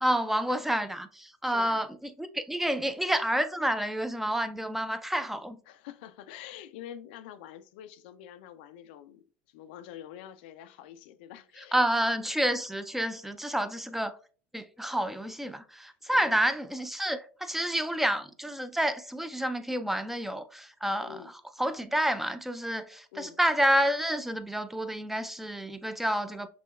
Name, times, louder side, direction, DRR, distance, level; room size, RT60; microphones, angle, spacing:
voice 1, 0.0-5.6 11.7-14.2 14.5-21.2 21.6-26.5, equal, 5° right, 0.3 m, -29 dB
voice 2, 1.4-1.9 5.7-11.8 15.8-16.4 21.0-21.3 23.1-23.4, left 10 dB, 80° left, 0.3 m, -46 dB
5.9 x 2.2 x 2.3 m
supercardioid pair, 100°, 5 cm